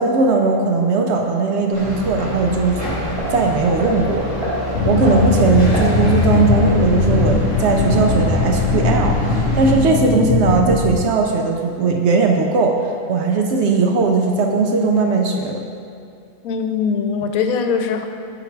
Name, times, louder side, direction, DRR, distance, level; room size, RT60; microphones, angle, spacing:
voice 1, 0.0-2.8 3.3-4.3 4.8-15.6, right 3 dB, 65° right, 2 dB, 0.7 m, -18 dB
sound 1, 1.7-9.8, equal, 25° right, 1.4 m, -26 dB
sound 2, 4.7-11.0, left 3 dB, 65° left, 0.8 m, -19 dB
voice 2, 16.4-18.0, left 6 dB, 90° left, 6 dB, 1.0 m, -21 dB
7.1 x 3.9 x 4.5 m, 2.4 s
omnidirectional pair, 1.5 m